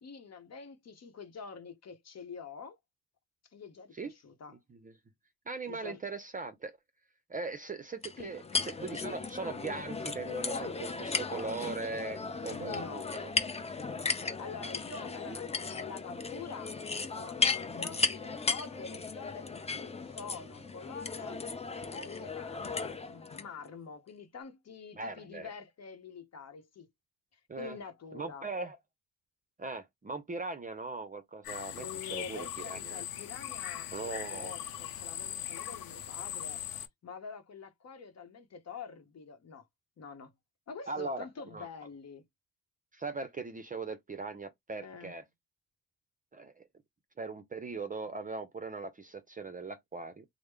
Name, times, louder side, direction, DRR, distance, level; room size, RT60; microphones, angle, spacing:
voice 1, 0.0-2.8 3.4-4.6 5.7-6.0 8.2-8.4 12.5-13.1 14.4-21.4 21.8-26.9 27.3-28.5 31.7-36.6 37.0-39.6 40.0-40.3 40.7-42.2 44.8-45.1, left 5 dB, 45° left, 0.9 m, -46 dB
voice 2, 5.5-6.8 7.3-13.3 24.9-25.5 27.5-27.8 28.1-28.8 29.6-33.0 33.9-34.6 40.9-41.3 41.5-41.7 42.9-45.2 46.3-46.6 47.2-50.2, right 4 dB, 25° right, 0.6 m, -40 dB
sound 1, 8.0-23.5, left 4 dB, 20° left, 0.6 m, -36 dB
sound 2, 31.4-36.9, left 11 dB, 75° left, 0.7 m, -40 dB
3.1 x 2.0 x 3.5 m
supercardioid pair, 65°, 35 cm